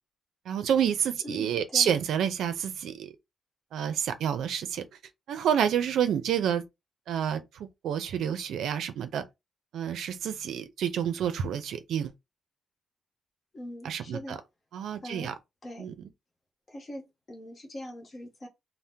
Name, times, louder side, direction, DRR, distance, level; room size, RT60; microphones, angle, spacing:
voice 1, 0.5-3.1 3.7-4.8 5.3-6.6 7.1-7.4 7.8-9.2 9.7-12.1 13.8-14.4 14.7-15.3 15.8-15.9, right 8 dB, 75° right, 0.5 m, -28 dB
voice 2, 1.2-1.9 13.5-14.4 15.0-15.3 15.6-15.9 16.7-18.5, left 1 dB, 25° left, 0.9 m, -42 dB
2.8 x 2.0 x 3.4 m
cardioid pair, 160°, 0 cm